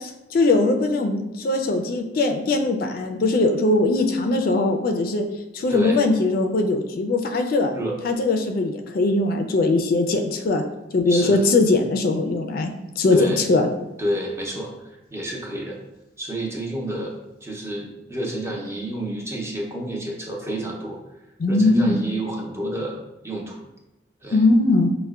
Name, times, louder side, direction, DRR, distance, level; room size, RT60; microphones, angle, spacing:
voice 1, 0.0-5.2 5.5-7.8 8.0-10.6 10.9-12.7 13.0-13.7 21.4-22.0 24.3-25.0, left 2 dB, 55° left, 4 dB, 0.3 m, -20 dB
voice 2, 5.7-6.0 7.7-8.0 11.1-11.4 13.1-13.4 14.0-15.8 16.2-17.2 17.4-21.0 21.5-22.9 23.2-23.6 24.2-24.4, right 1 dB, 15° right, -1 dB, 0.5 m, -29 dB
5.3 x 2.1 x 2.3 m, 1.0 s
head